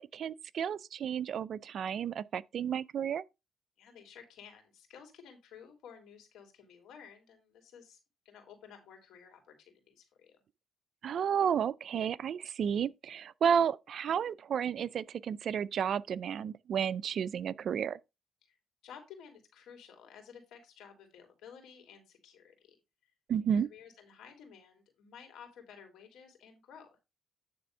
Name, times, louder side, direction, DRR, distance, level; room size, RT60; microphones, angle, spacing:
voice 1, 0.0-3.2 11.0-18.0 23.3-23.7, right 8 dB, 60° right, 0.4 m, -32 dB
voice 2, 3.8-8.0 8.2-10.4 18.4-18.6 18.8-22.8 23.0-23.1 23.7-26.9, left 7 dB, 80° left, 2.9 m, -54 dB
9.5 x 3.5 x 5.4 m
cardioid pair, 90°, 0 cm